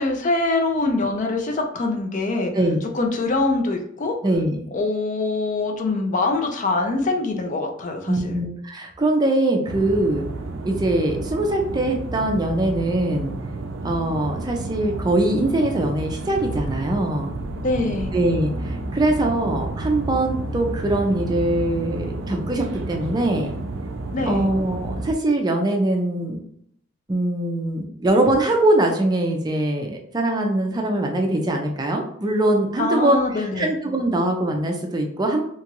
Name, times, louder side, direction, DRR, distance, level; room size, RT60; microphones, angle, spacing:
voice 1, 0.0-2.5 2.9-4.2 4.7-8.4 17.6-18.1 24.1-24.5 32.8-33.7, left 3 dB, 40° left, 3 dB, 0.4 m, -24 dB
voice 2, 4.2-4.6 8.1-10.3 10.6-13.3 13.8-17.3 18.1-23.5 24.3-26.4 27.1-35.4, right 1 dB, 20° right, 2 dB, 0.4 m, -22 dB
sound 1, 9.7-25.1, right 2 dB, 85° right, 0.4 m, -31 dB
2.9 x 2.4 x 2.9 m, 0.68 s
head